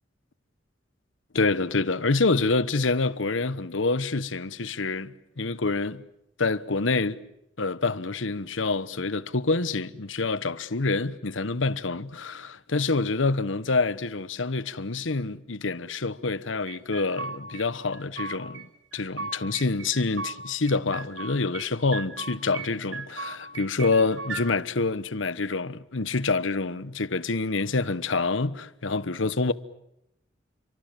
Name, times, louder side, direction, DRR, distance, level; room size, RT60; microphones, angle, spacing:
voice 1, 1.3-6.0 6.4-7.2 7.6-18.7 18.9-29.5, left 3 dB, 90° left, 1.1 m, -27 dB
sound 1, 16.7-17.6 17.9-18.6 18.9-20.4 20.7-21.7 21.9-22.7 22.9-24.4, right 4 dB, 80° right, 5.7 m, -37 dB
29.5 x 24.0 x 7.5 m
head